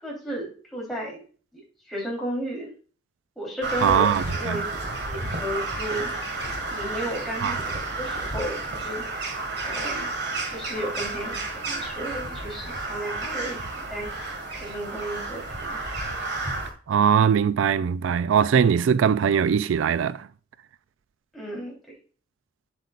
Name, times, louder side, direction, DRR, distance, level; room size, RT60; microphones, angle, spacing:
voice 1, 0.0-1.2 1.5-1.6 1.9-2.7 3.3-4.7 5.0-6.1 6.7-9.0 9.6-10.1 10.5-13.6 13.9-14.3 14.6-15.8 21.3-21.9, right 1 dB, ahead, 3.5 m, -33 dB
Crow, 3.6-16.7, right 2 dB, 60° right, 1.8 m, -31 dB
voice 2, 3.8-4.6 7.4-7.6 16.9-20.3, right 7 dB, 85° right, 0.3 m, -21 dB
8.1 x 7.6 x 2.5 m
head